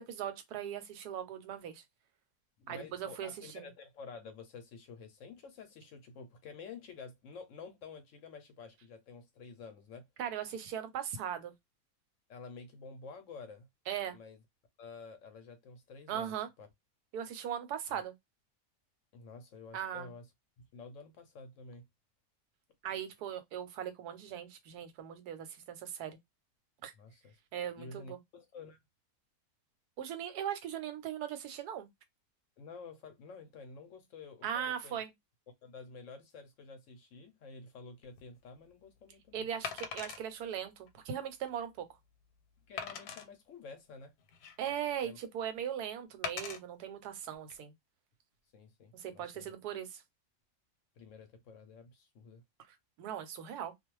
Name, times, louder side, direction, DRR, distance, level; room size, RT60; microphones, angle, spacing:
voice 1, 0.0-1.8 2.7-3.7 10.2-11.5 13.9-14.2 16.1-16.5 17.1-18.1 19.7-20.1 22.8-26.2 26.8-26.9 27.5-28.2 30.0-31.9 34.4-35.1 39.3-41.9 44.6-47.7 48.9-50.0 53.0-53.7, right 9 dB, 90° right, 1.1 m, -39 dB
voice 2, 2.6-10.0 12.3-13.7 14.1-14.4 14.8-16.7 17.9-18.0 19.1-20.3 20.6-21.8 27.0-27.4 27.8-28.8 32.6-35.0 35.6-39.5 42.7-44.1 45.0-45.2 48.5-49.5 51.0-52.4, left 4 dB, 65° left, 0.8 m, -50 dB
Wood, 38.0-38.2 39.6-40.2 40.9-41.0 41.5-41.6 42.8-43.3 44.0-44.8 46.2-46.6 47.3-47.5, left 7 dB, 90° left, 1.1 m, -40 dB
2.4 x 2.2 x 3.0 m
omnidirectional pair, 1.6 m